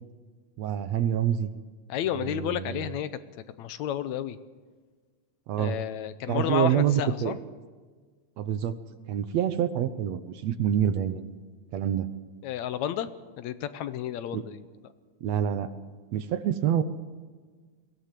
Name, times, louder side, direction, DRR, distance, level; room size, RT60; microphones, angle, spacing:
voice 1, 0.6-1.5 2.1-2.9 5.5-5.8 6.3-7.4 8.4-8.8 9.1-11.3 11.7-12.1 14.3-14.4 15.2-15.7 16.1-16.8, right 10 dB, 70° right, 11 dB, 1.9 m, -27 dB
voice 2, 1.9-3.1 3.6-4.4 5.6-7.4 12.4-13.1 13.4-14.6, left 10 dB, 75° left, 13 dB, 2.0 m, -31 dB
21.5 x 17.0 x 7.5 m, 1.4 s
omnidirectional pair, 3.5 m